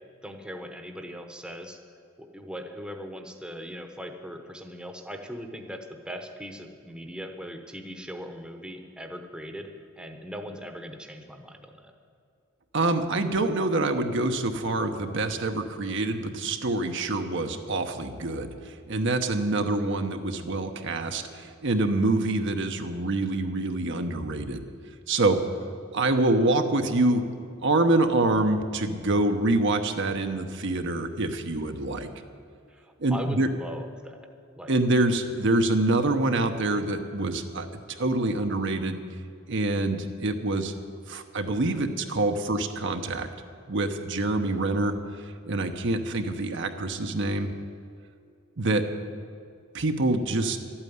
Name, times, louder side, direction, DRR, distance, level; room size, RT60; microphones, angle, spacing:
voice 1, 0.2-1.8 2.2-9.7 10.0-11.9 32.7-34.3 34.6-34.7, equal, 5° right, 4 dB, 0.9 m, -39 dB
voice 2, 12.7-24.6 25.1-25.4 25.9-27.2 27.6-32.1 33.0-33.5 34.7-37.7 38.0-39.0 39.5-40.7 41.1-43.3 43.7-44.9 45.4-47.5 48.6-48.8 49.7-50.6, right 2 dB, 60° right, 6 dB, 1.0 m, -26 dB
12.5 x 8.9 x 9.5 m, 2.3 s
head